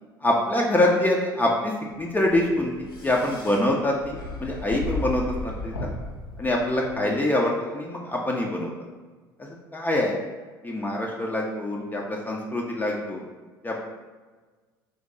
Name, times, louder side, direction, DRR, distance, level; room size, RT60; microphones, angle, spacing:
voice 1, 0.2-5.9 6.4-8.7 9.7-10.2 10.6-13.2 13.6-13.8, left 1 dB, 15° left, -1 dB, 0.5 m, -25 dB
sound 1, 1.9-7.1, left 2 dB, 85° left, 0.5 m, -35 dB
2.9 x 2.7 x 3.7 m, 1.4 s
figure-of-eight pair, 60°, 12 cm